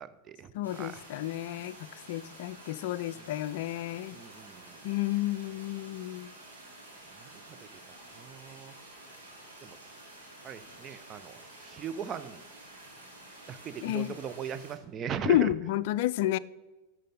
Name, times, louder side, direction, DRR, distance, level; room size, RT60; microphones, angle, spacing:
voice 1, 0.0-0.5 0.8-1.0 4.1-4.8 7.2-7.6 8.2-8.7 9.6-9.8 10.4-11.4 11.6-12.4 13.5-15.5, right 8 dB, 25° right, 0.6 m, -38 dB
voice 2, 0.5-4.2 4.8-6.3 13.8-14.2 15.3-16.4, left 14 dB, 50° left, 0.3 m, -31 dB
sound 1, 0.6-14.7, right 1 dB, 80° right, 3.9 m, -50 dB
11.5 x 7.6 x 3.9 m
figure-of-eight pair, 90°, 0 cm